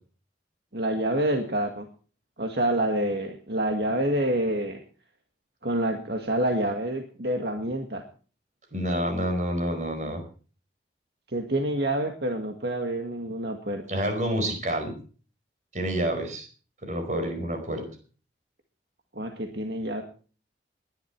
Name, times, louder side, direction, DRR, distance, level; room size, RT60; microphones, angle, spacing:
voice 1, 0.7-1.9 2.4-4.8 5.6-8.0 11.3-14.0 19.1-20.0, right 1 dB, 65° right, 4 dB, 1.9 m, -27 dB
voice 2, 8.7-10.2 13.9-14.9 15.7-16.5 16.8-17.8, equal, 45° right, 6 dB, 4.9 m, -28 dB
20.0 x 11.5 x 4.6 m, 0.39 s
head